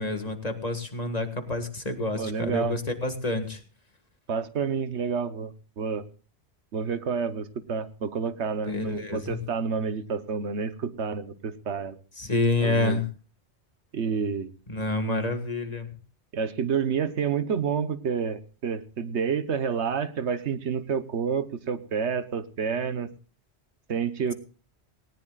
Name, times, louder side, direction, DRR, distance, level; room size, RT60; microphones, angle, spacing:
voice 1, 0.0-3.6 8.7-9.4 12.2-13.0 14.7-15.9, left 2 dB, 35° left, 6 dB, 1.9 m, -28 dB
voice 2, 2.1-2.8 4.3-6.0 6.7-12.0 12.6-13.0 13.9-14.5 16.3-23.1 23.9-24.3, right 6 dB, 80° right, 12 dB, 1.3 m, -29 dB
19.0 x 18.5 x 2.4 m, 0.37 s
omnidirectional pair, 1.1 m